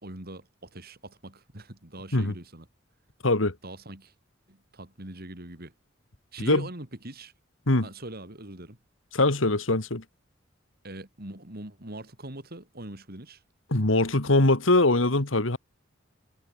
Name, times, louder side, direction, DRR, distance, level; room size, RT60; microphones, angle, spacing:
voice 1, 0.0-2.7 3.6-4.1 4.5-5.7 6.3-7.3 7.8-8.8 10.8-13.4, right 1 dB, 50° right, 4.1 m, -42 dB
voice 2, 3.2-3.5 6.5-6.6 7.7-7.9 9.1-10.0 13.7-15.6, left 2 dB, 75° left, 2.3 m, -22 dB
head